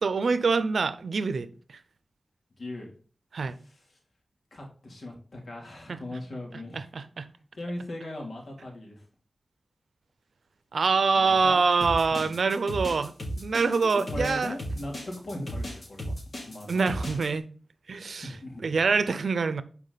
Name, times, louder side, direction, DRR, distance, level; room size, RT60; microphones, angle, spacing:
voice 1, 0.0-1.8 3.3-3.6 5.9-6.0 6.7-7.3 10.7-14.6 16.7-17.4 17.9-18.4 18.6-19.6, right 4 dB, 75° right, 0.7 m, -25 dB
voice 2, 2.6-2.9 3.7-3.8 4.5-6.9 7.5-9.0 11.2-11.6 12.1-12.3 13.6-13.8 14.1-16.1 16.4-17.1 18.2-18.8, left 1 dB, 65° left, 3.1 m, -38 dB
sound 1, 11.8-17.3, equal, 45° left, 2.8 m, -35 dB
12.0 x 4.9 x 4.1 m
wide cardioid pair, 115°, 0 cm